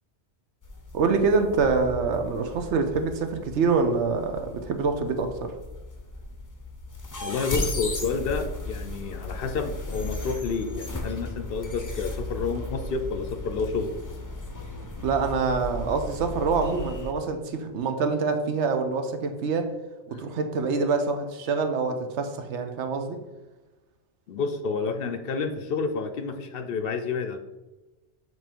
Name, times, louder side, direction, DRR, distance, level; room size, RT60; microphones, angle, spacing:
sound 1, 0.6-17.1, left 2 dB, 25° left, 0.5 m, -36 dB
voice 1, 0.9-5.5 15.0-19.7 20.1-23.2, right 4 dB, 80° right, 1.0 m, -25 dB
voice 2, 7.2-14.0 20.1-20.2 24.3-27.4, left 4 dB, 65° left, 0.7 m, -29 dB
7.1 x 3.0 x 4.4 m
omnidirectional pair, 1.2 m